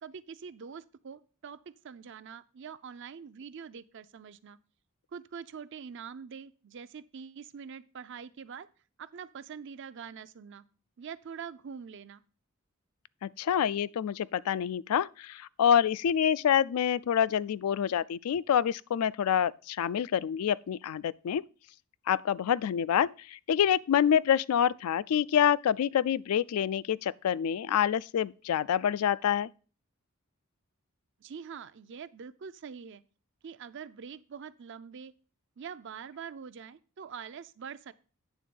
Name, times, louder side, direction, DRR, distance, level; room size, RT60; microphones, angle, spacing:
voice 1, 0.0-4.6 5.1-8.7 9.0-10.6 11.0-12.2 31.2-33.0 33.4-35.1 35.6-37.9, right 6 dB, 55° right, 0.5 m, -44 dB
voice 2, 13.2-21.4 22.1-29.5, left 9 dB, 85° left, 0.3 m, -27 dB
9.1 x 3.6 x 6.9 m
head